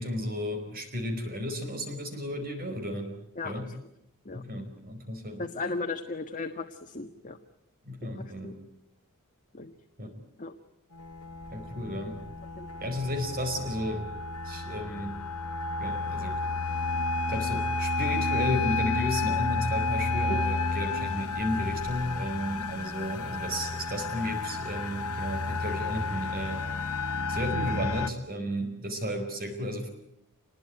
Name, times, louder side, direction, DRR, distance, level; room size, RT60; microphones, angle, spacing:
voice 1, 0.0-3.1 3.4-3.7 4.3-5.4 7.9-8.5 10.0-10.1 11.5-12.2 12.8-14.1 14.4-15.2 15.8-16.4 17.3-26.7 27.3-29.9, equal, 40° right, 7 dB, 4.7 m, -33 dB
voice 2, 5.4-7.4 8.4-8.5 9.5-9.7 10.4-10.5 12.6-12.9 20.3-20.4, left 3 dB, 35° left, 5 dB, 1.5 m, -35 dB
sound 1, 11.0-28.1, left 3 dB, 90° left, 1.3 m, -31 dB
27.5 x 21.5 x 9.4 m, 0.79 s
head